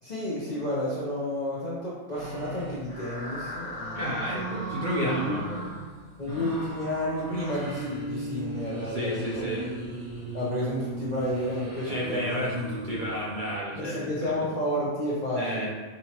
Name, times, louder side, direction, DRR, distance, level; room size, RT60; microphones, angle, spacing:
voice 1, 0.0-4.2 5.0-5.4 6.2-9.5 10.3-12.5 13.8-15.7, left 1 dB, 45° left, -7 dB, 0.6 m, -31 dB
sound 1, 2.1-13.5, right 2 dB, 80° right, 2.2 m, -38 dB
voice 2, 3.9-5.7 6.3-6.5 8.9-9.7 11.9-14.3 15.4-15.7, equal, 45° right, -6 dB, 0.7 m, -32 dB
5.0 x 2.9 x 2.9 m, 1.4 s
omnidirectional pair, 1.4 m